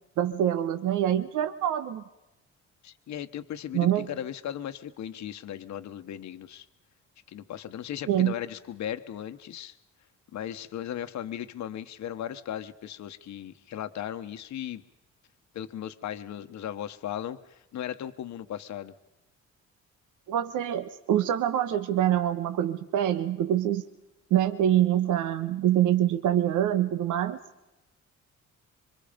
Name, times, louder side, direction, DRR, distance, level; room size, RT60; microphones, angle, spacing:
voice 1, 0.2-2.0 3.7-4.1 8.1-8.3 20.3-23.8 24.3-27.4, right 11 dB, 85° right, 9 dB, 1.3 m, -25 dB
voice 2, 2.8-6.7 7.3-9.7 10.3-14.8 15.5-18.9, left 10 dB, 65° left, 9 dB, 1.3 m, -37 dB
26.5 x 25.0 x 5.2 m, 0.97 s
cardioid pair, 90°, 30 cm